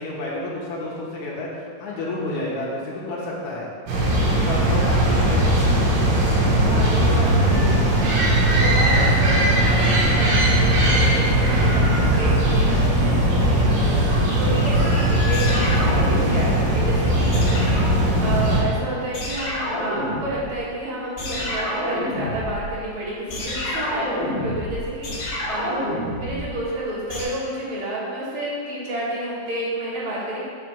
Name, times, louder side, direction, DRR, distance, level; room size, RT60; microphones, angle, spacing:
voice 1, 0.0-3.7 4.3-5.4, left 2 dB, 65° left, -6 dB, 2.0 m, -30 dB
sound 1, 3.9-18.6, right 1 dB, 75° right, 3.2 m, -19 dB
voice 2, 4.5-4.9 6.6-8.0 8.5-25.9 26.1-30.4, right 1 dB, 50° right, -8 dB, 1.7 m, -30 dB
sound 2, 15.3-16.8 17.3-18.8 19.1-20.7 21.2-27.2, left 1 dB, 50° left, 1.6 m, -29 dB
7.6 x 3.3 x 6.2 m, 2.2 s
omnidirectional pair, 4.5 m